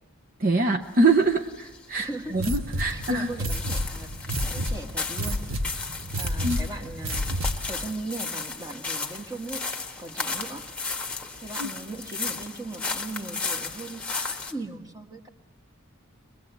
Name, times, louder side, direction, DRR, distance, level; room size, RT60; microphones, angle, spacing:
voice 1, 0.4-3.3 6.4-6.6 11.6-11.7, right 2 dB, 45° right, 3 dB, 0.8 m, -24 dB
sound 1, 0.8-14.5, left 4 dB, 5° left, 1.5 m, -35 dB
voice 2, 2.0-2.4 2.8-5.5 6.2-7.4 7.7-9.7 10.0-10.6 11.4-15.3, right 2 dB, 20° right, 3 dB, 1.6 m, -38 dB
sound 2, 2.3-7.8, equal, 75° right, 1.6 m, -30 dB
23.0 x 22.0 x 8.2 m, 1.1 s
head